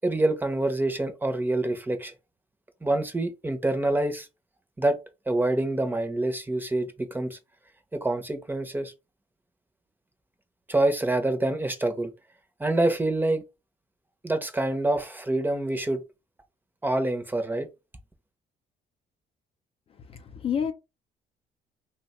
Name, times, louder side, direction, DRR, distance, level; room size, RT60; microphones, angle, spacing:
voice 1, 0.0-2.1 2.8-4.3 4.8-5.0 5.3-7.4 7.9-8.9 10.7-12.1 12.6-13.4 14.2-16.0 16.8-17.7, right 2 dB, 10° right, 0.6 m, -26 dB
voice 2, 20.1-20.7, left 8 dB, 35° left, 0.4 m, -29 dB
3.1 x 2.1 x 2.9 m
cardioid pair, 110°, 17 cm